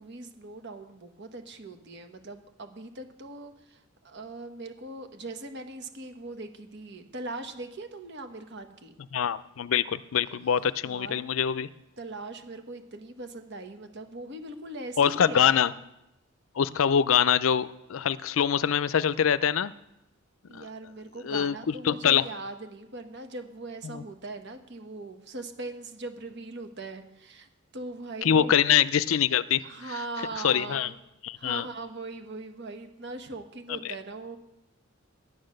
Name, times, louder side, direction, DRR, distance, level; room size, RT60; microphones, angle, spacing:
voice 1, 0.0-9.0 10.2-10.4 10.8-11.2 12.0-15.5 20.5-28.5 29.6-31.0 31.4-34.4, right 2 dB, 55° right, 7 dB, 1.3 m, -40 dB
voice 2, 9.1-11.7 15.0-15.7 16.6-19.7 20.5-20.7 21.2-22.3 23.8-24.0 28.2-29.6 30.4-30.9 31.2-31.7 33.7-33.9, left 8 dB, 70° left, 16 dB, 0.4 m, -24 dB
11.0 x 9.6 x 6.5 m, 0.89 s
head